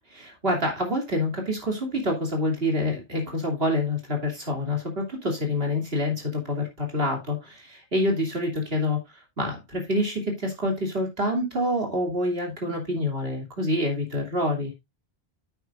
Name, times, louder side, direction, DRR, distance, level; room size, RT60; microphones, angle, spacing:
voice 1, 0.1-14.7, left 1 dB, 60° right, 3.0 m, -27 dB
10.0 x 8.3 x 2.4 m
omnidirectional pair, 1.1 m